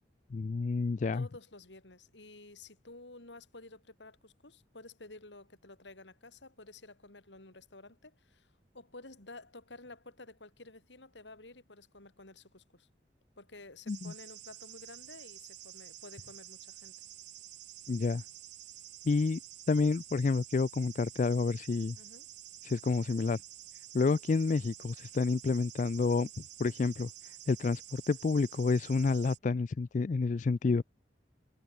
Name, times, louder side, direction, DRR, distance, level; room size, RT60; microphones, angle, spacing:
voice 1, 0.3-1.3 13.9-14.1 17.9-18.2 19.1-19.4 19.7-22.0 22.6-23.4 23.9-26.3 26.6-27.1 27.5-30.8, left 4 dB, 45° left, 0.4 m, -29 dB
voice 2, 1.1-12.9 13.4-16.9 22.0-22.3, left 2 dB, 90° left, 4.2 m, -52 dB
sound 1, 13.9-29.4, right 13 dB, 80° right, 3.2 m, -50 dB
head